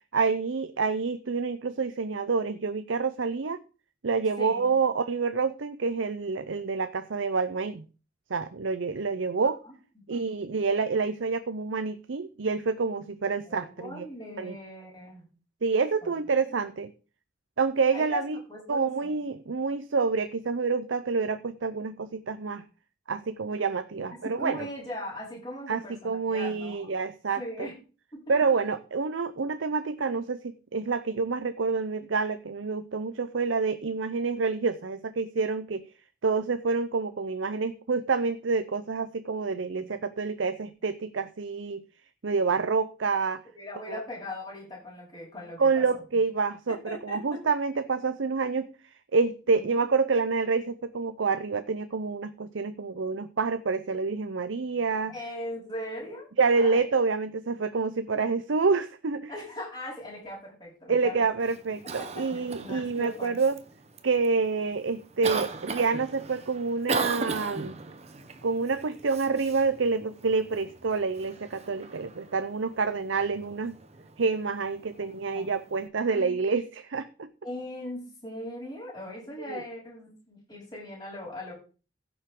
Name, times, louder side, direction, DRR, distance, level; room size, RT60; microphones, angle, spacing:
voice 1, 0.1-3.6 4.0-7.8 8.3-9.6 10.1-14.1 14.4-14.6 15.6-16.9 17.6-18.4 18.7-22.6 23.1-24.7 25.7-27.7 28.3-35.8 36.2-41.8 42.2-43.4 43.9-44.0 45.6-48.7 49.1-55.1 56.4-59.3 60.9-63.6 64.0-67.8 68.4-73.8 74.2-77.3 79.5-79.6, right 4 dB, 90° right, 11 dB, 0.6 m, -28 dB
voice 2, 4.4-4.7 9.6-9.7 10.1-10.2 13.5-15.3 16.0-16.1 16.5-16.6 17.9-18.2 18.5-19.2 24.2-26.9 27.4-27.7 28.1-28.4 39.7-40.0 43.5-46.0 46.7-47.4 49.5-49.9 55.1-56.3 56.6-56.8 59.3-61.1 62.0-62.2 62.6-63.4 75.0-75.1 75.3-75.5 76.0-76.4 77.4-81.5, left 1 dB, 20° left, -5 dB, 7.5 m, -40 dB
Cough, 61.4-75.9, right 4 dB, 35° right, 1.0 m, -39 dB
16.0 x 7.1 x 3.8 m, 0.36 s
head